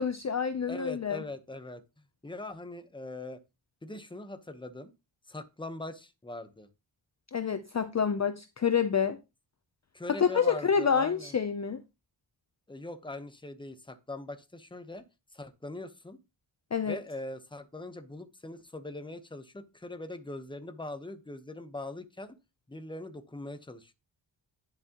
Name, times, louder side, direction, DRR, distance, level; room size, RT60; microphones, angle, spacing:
voice 1, 0.0-1.2 7.3-9.2 10.1-11.8 16.7-17.0, left 6 dB, 35° left, 0.6 m, -28 dB
voice 2, 0.7-1.8 2.2-3.4 3.8-4.9 5.3-6.7 9.9-11.3 12.7-15.1 15.3-16.2 16.8-22.4 22.7-23.9, left 2 dB, 10° left, 0.9 m, -41 dB
10.5 x 7.4 x 3.0 m
wide cardioid pair, 125°, 45 cm